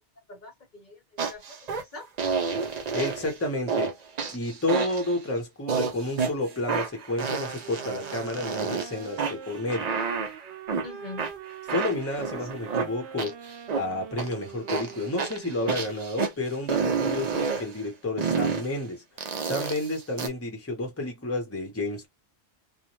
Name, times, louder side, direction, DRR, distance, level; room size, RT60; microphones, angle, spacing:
voice 1, 0.3-2.1 10.8-11.3, left 3 dB, 45° left, 0.9 m, -44 dB
sound 1, 1.2-1.8 2.2-3.3 3.7-5.1 5.7-6.3 6.7-8.9 9.2-10.8 11.2-13.8 14.2-14.3 14.7-16.3 16.7-17.6 18.2-18.7 19.2-20.3, right 5 dB, 45° right, 0.6 m, -29 dB
voice 2, 2.9-3.9 4.3-9.9 11.7-13.4 13.7-22.1, left 2 dB, 15° left, 0.8 m, -30 dB
sound 2, 7.6-15.8, right 8 dB, 75° right, 0.9 m, -44 dB
2.6 x 2.1 x 3.0 m
omnidirectional pair, 1.1 m